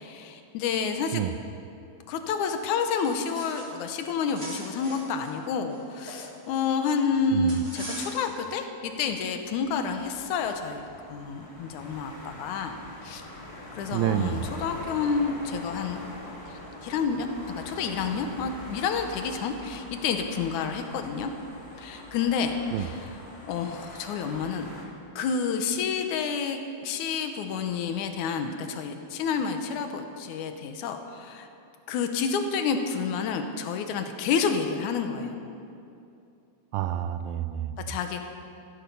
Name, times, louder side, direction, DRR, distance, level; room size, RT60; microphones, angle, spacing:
voice 1, 0.0-1.2 2.1-12.8 13.0-13.2 13.7-16.0 16.5-21.3 21.8-23.1 23.5-24.7 25.2-31.5 31.9-35.5 37.9-38.2, left 5 dB, 70° left, 6 dB, 2.0 m, -29 dB
sound 1, 2.7-3.8 4.1-6.9 7.5-8.5, right 1 dB, 25° right, 3.3 m, -42 dB
voice 2, 7.3-7.6 13.9-14.5 22.7-22.9 36.7-38.0, right 11 dB, 80° right, 10 dB, 2.1 m, -29 dB
sound 2, 9.6-24.8, left 1 dB, 35° left, 0.5 m, -43 dB
15.5 x 14.0 x 5.5 m, 2.6 s
omnidirectional pair, 4.4 m